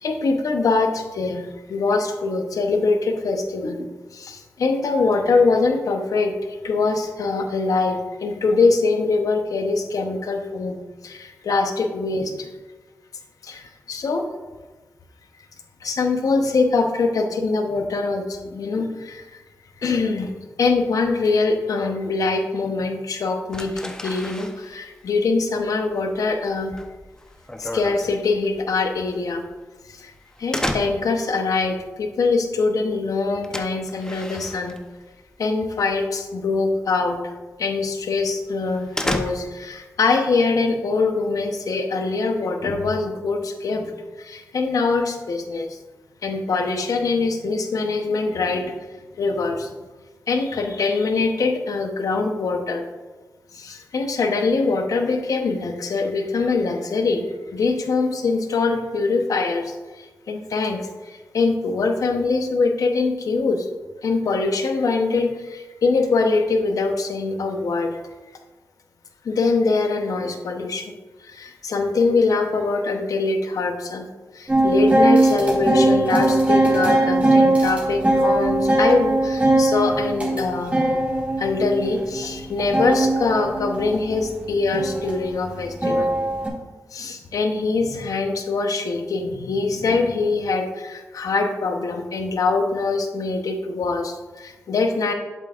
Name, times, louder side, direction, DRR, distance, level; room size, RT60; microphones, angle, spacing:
voice 1, 0.0-6.3 6.6-12.5 13.4-14.2 15.8-19.4 19.8-20.3 20.6-26.8 27.6-29.4 29.9-30.1 30.4-34.8 35.4-37.2 37.6-43.9 44.2-45.8 46.2-48.7 49.2-49.7 50.3-52.8 53.5-57.2 57.5-63.7 64.0-68.0 69.2-70.9 71.2-74.1 74.3-80.8 81.4-86.1 86.9-95.1, left 3 dB, 75° left, 5 dB, 0.9 m, -23 dB
sound 1, 23.5-35.4 35.7-36.2 36.5-36.7 37.1-37.2 37.7-37.8 38.1-39.8, left 1 dB, 10° left, 0.8 m, -33 dB
sound 2, 74.5-86.5, right 1 dB, 20° right, 2.2 m, -20 dB
8.1 x 7.5 x 2.5 m, 1.2 s
cardioid pair, 55°, 6 cm